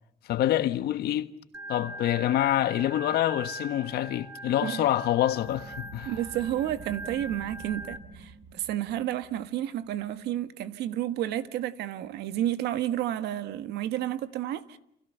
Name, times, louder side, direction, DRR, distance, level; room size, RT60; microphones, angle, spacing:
voice 1, 0.3-1.3 1.7-6.1, left 13 dB, 70° left, 1.4 m, -26 dB
Organ, 1.5-8.0, right 1 dB, 10° right, 4.4 m, -41 dB
sound 1, 5.4-10.6, right 3 dB, 60° right, 3.1 m, -48 dB
voice 2, 6.0-14.8, right 12 dB, 80° right, 1.6 m, -31 dB
29.5 x 27.5 x 6.8 m
cardioid pair, 110°, 17 cm